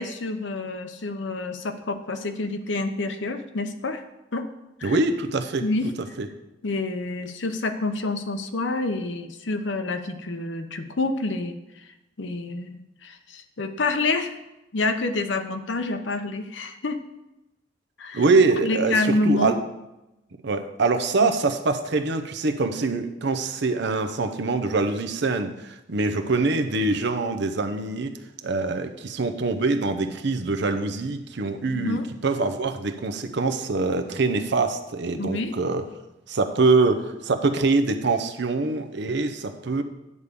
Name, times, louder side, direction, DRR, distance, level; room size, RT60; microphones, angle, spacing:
voice 1, 0.0-4.0 4.3-4.5 4.8-5.0 5.6-5.9 6.6-11.9 12.2-14.3 14.7-17.0 18.0-18.2 18.6-19.6 21.2-21.3 31.7-32.1 35.2-35.5, left 2 dB, 70° left, 7 dB, 0.8 m, -28 dB
voice 2, 4.8-5.6 6.2-6.3 18.1-19.5 20.4-28.2 28.4-35.8 36.3-39.8, right 3 dB, 65° right, 7 dB, 0.7 m, -24 dB
9.6 x 3.6 x 6.7 m, 0.94 s
head